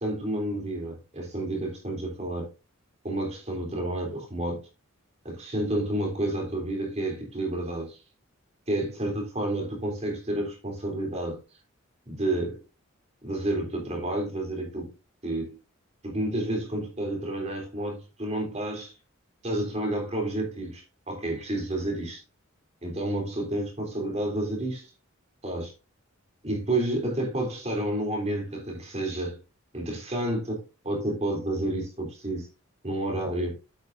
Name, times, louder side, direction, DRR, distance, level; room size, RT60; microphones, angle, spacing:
voice 1, 0.0-2.5 3.0-4.6 5.2-8.0 8.7-11.4 12.1-12.6 13.2-14.9 15.2-15.6 16.0-18.9 19.4-22.2 22.8-24.9 25.4-25.7 26.4-29.4 29.7-32.5 32.8-33.5, right 1 dB, 30° right, 3.3 m, -30 dB
8.6 x 8.1 x 2.6 m
head